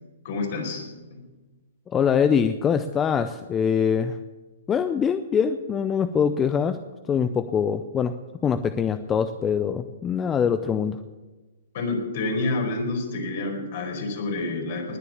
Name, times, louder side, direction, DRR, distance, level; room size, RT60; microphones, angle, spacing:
voice 1, 0.2-0.8 1.1-1.2 11.7-15.0, left 2 dB, 55° left, 2 dB, 4.7 m, -28 dB
voice 2, 1.9-4.2 4.7-6.8 7.1-8.1 8.4-11.0, left 7 dB, 15° left, 11 dB, 0.5 m, -23 dB
20.0 x 7.0 x 8.6 m, 1.2 s
hypercardioid pair, 145°, 0 cm